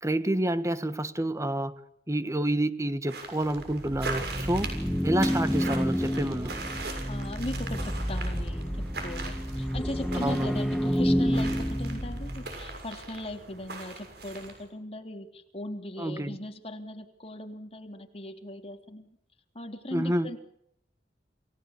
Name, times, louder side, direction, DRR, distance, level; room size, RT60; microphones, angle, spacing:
voice 1, 0.0-1.7 2.1-4.7 5.0-6.5 10.2-10.6 16.0-16.4 19.9-20.3, right 1 dB, 15° right, 13 dB, 1.4 m, -28 dB
sound 1, 3.1-14.7, right 3 dB, 65° right, 6.8 m, -41 dB
sound 2, 3.7-12.9, equal, ahead, 0.9 m, -30 dB
voice 2, 7.1-19.2 19.5-20.4, left 1 dB, 35° left, 5 dB, 3.3 m, -39 dB
29.0 x 18.0 x 8.4 m, 0.74 s
head